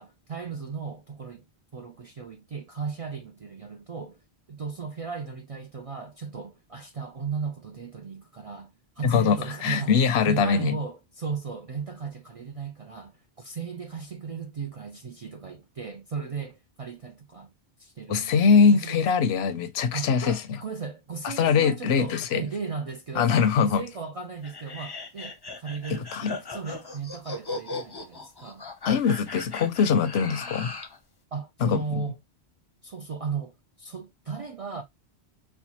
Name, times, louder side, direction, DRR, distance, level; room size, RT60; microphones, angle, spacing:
voice 1, 0.0-1.5 1.7-4.2 4.5-8.7 9.0-17.5 17.8-18.3 18.7-19.0 19.9-28.6 31.3-32.2 32.8-34.8, right 5 dB, 55° right, 0.4 m, -36 dB
voice 2, 9.0-9.4 9.6-10.7 18.1-20.4 21.2-22.4 23.2-23.8 26.1-26.3 28.9-30.7 31.6-32.0, left 6 dB, 80° left, 0.8 m, -22 dB
sound 1, 24.4-31.0, left 3 dB, 30° left, 0.6 m, -38 dB
4.3 x 2.3 x 2.8 m
omnidirectional pair, 1.1 m